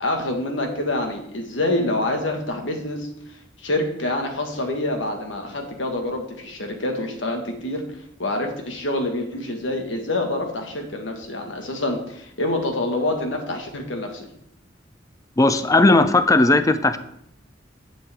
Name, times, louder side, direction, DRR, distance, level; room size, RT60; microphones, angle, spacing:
voice 1, 0.0-14.2, left 1 dB, 85° left, 3 dB, 1.7 m, -26 dB
voice 2, 15.4-17.0, left 2 dB, 20° left, 11 dB, 0.5 m, -16 dB
10.0 x 7.6 x 3.6 m, 0.74 s
head